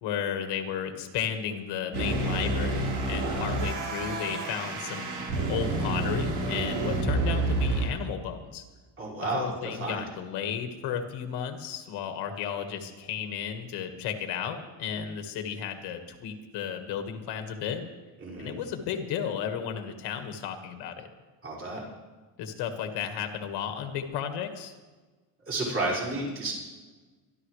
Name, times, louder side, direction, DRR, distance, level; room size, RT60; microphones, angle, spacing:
voice 1, 0.0-5.1 5.5-8.6 9.2-17.9 18.4-21.1 22.4-24.7, left 8 dB, 75° left, 6 dB, 1.7 m, -33 dB
sound 1, 1.9-7.9, right 2 dB, 70° right, 4.2 m, -29 dB
voice 2, 3.2-3.6 9.0-10.0 18.2-18.6 21.4-21.8 25.5-26.5, right 2 dB, 35° right, -5 dB, 5.5 m, -32 dB
24.5 x 12.0 x 3.3 m, 1.3 s
cardioid pair, 170°, 41 cm